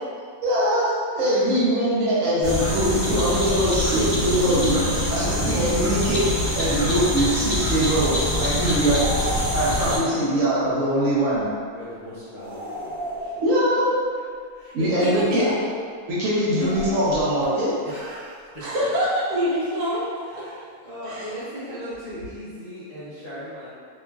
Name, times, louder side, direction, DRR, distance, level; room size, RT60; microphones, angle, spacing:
voice 1, 0.4-6.3 6.5-9.1 9.5-11.5 13.4-13.9 14.7-15.5 16.1-17.7, equal, 65° right, -8 dB, 0.9 m, -22 dB
voice 2, 1.1-1.5 4.9-5.7 11.7-13.5 14.4-15.4 17.8-18.9 20.2-23.7, equal, 35° left, -14 dB, 0.7 m, -38 dB
sound 1, 2.4-10.0, equal, 10° right, 1.2 m, -25 dB
sound 2, 8.8-10.1 12.4-13.8 16.5-17.6, equal, 40° right, 1.1 m, -32 dB
voice 3, 15.0-15.5 16.6-16.7 18.6-20.5 21.0-21.3, equal, 85° right, -7 dB, 1.3 m, -25 dB
2.9 x 2.4 x 2.3 m, 2.1 s
omnidirectional pair, 1.6 m